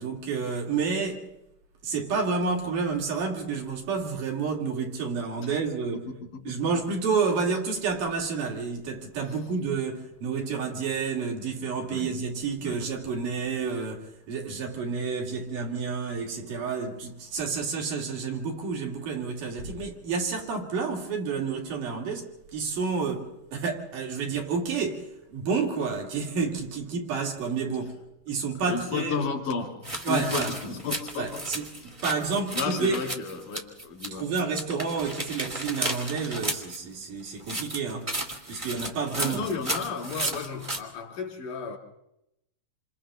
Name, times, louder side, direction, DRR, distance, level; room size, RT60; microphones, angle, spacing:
voice 1, 0.0-1.3 1.8-6.1 6.5-28.0 28.3-29.3 30.1-30.5 31.2-33.0 34.1-38.1 38.5-39.5, right 5 dB, 75° right, 4.2 m, -30 dB
voice 2, 5.9-6.7 9.3-9.5 11.9-12.1 12.6-12.8 28.6-31.5 31.8-32.0 32.5-34.3 39.2-41.8, left 5 dB, 85° left, 4.5 m, -33 dB
sound 1, 29.8-34.1 34.3-36.8 37.4-40.8, right 1 dB, 15° right, 1.4 m, -33 dB
28.0 x 27.5 x 3.8 m
omnidirectional pair, 3.7 m